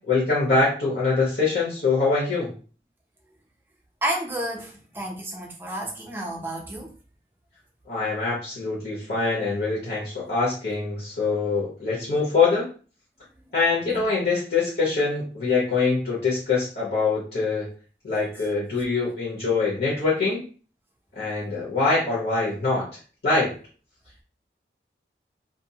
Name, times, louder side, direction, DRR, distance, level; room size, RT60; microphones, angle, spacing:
voice 1, 0.1-2.5 7.9-12.7 13.5-17.7 18.0-20.4 21.1-22.9 23.2-23.5, left 4 dB, 65° left, 1.0 m, -24 dB
voice 2, 4.0-6.9 13.9-14.0, right 1 dB, 10° right, 0.4 m, -31 dB
2.5 x 2.0 x 2.7 m
head